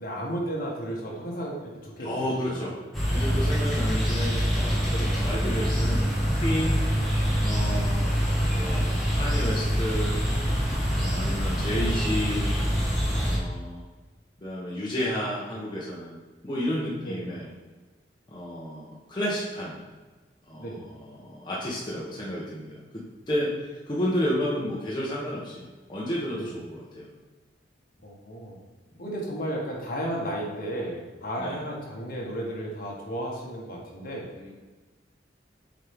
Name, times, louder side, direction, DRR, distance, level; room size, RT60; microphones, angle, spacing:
voice 1, 0.0-2.1 2.5-2.7 4.8-5.1 17.0-17.3 20.6-20.8 26.4-26.5 28.0-28.6 29.0-34.3, right 1 dB, 50° left, -2 dB, 1.6 m, -33 dB
voice 2, 2.0-2.7 3.1-4.8 5.2-6.8 7.4-8.1 8.5-10.2 10.9-12.5 13.2-13.8 14.4-17.5 18.3-19.8 20.5-25.6 25.9-27.1 31.4-31.7 34.4-34.5, equal, 25° left, -6 dB, 1.1 m, -31 dB
sound 1, 2.9-13.4, equal, ahead, 1.8 m, -25 dB
7.4 x 4.5 x 3.5 m, 1.3 s
head